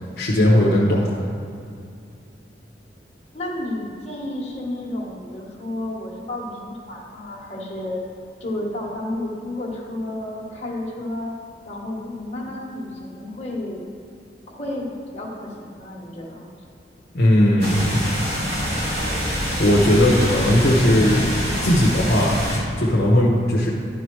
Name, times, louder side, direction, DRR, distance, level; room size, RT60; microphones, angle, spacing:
voice 1, 0.2-1.2 17.1-18.0 19.6-21.2 21.6-22.4 22.8-23.7, left 1 dB, 60° left, -4 dB, 1.0 m, -17 dB
voice 2, 3.3-8.0 8.4-11.3 11.6-13.8 14.5-16.7, left 1 dB, 35° left, -4 dB, 1.6 m, -31 dB
sound 1, 17.6-22.6, equal, 60° right, 2.1 m, -25 dB
11.5 x 5.0 x 4.7 m, 2.4 s
head